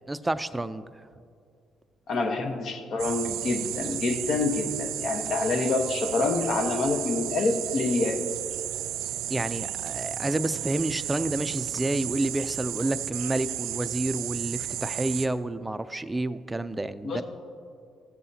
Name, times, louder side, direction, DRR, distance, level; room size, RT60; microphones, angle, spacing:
voice 1, 0.1-1.1 9.3-17.2, right 2 dB, 15° right, 0.4 m, -29 dB
voice 2, 2.1-8.2 17.0-17.2, left 3 dB, 60° left, 1.1 m, -27 dB
sound 1, 3.0-15.3, right 12 dB, 85° right, 0.4 m, -33 dB
15.0 x 7.4 x 2.8 m
supercardioid pair, 75°, 0 cm